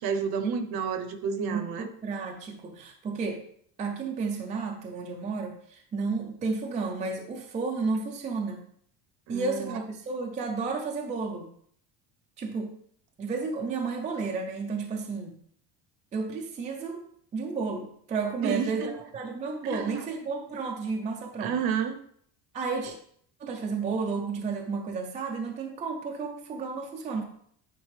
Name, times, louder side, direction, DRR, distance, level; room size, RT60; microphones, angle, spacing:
voice 1, 0.0-1.9 9.3-9.8 18.4-18.9 19.6-20.1 21.4-22.0, right 6 dB, 55° right, 8 dB, 0.8 m, -30 dB
voice 2, 1.5-3.4 3.8-8.6 9.3-11.5 12.4-12.7 13.2-15.3 16.1-17.0 17.3-21.6 22.5-22.9 23.4-27.2, right 4 dB, 20° right, 2 dB, 0.4 m, -32 dB
9.2 x 3.5 x 3.3 m, 0.63 s
cardioid pair, 175°, 44 cm